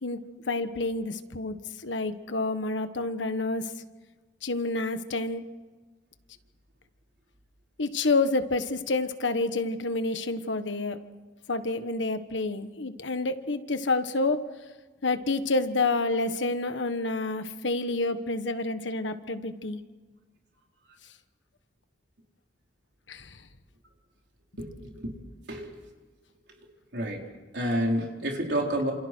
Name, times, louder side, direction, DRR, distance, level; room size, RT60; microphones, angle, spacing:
voice 1, 0.5-1.6 1.8-3.7 4.4-5.4 7.8-11.0 11.5-14.4 15.0-19.8 23.1-23.4, left 3 dB, 85° left, 10 dB, 1.4 m, -28 dB
voice 2, 27.5-28.9, right 1 dB, 65° right, 0 dB, 4.1 m, -28 dB
28.0 x 27.5 x 4.6 m, 1.4 s
head